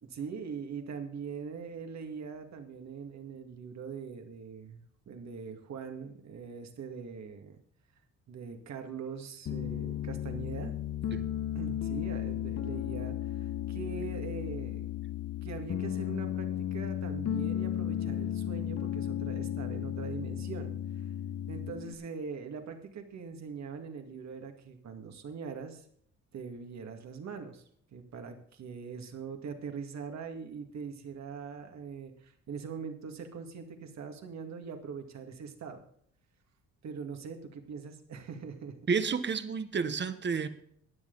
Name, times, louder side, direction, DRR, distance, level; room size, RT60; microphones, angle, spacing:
voice 1, 0.0-7.6 8.3-10.7 11.5-14.9 15.4-21.0 21.5-25.9 26.3-27.6 27.9-35.8 36.8-38.8, right 6 dB, 65° right, 2.2 m, -42 dB
Piano, 9.5-21.9, left 11 dB, 55° left, 1.0 m, -34 dB
voice 2, 38.9-40.5, right 5 dB, 35° right, 1.2 m, -30 dB
15.0 x 10.0 x 4.0 m
cardioid pair, 90°, 30 cm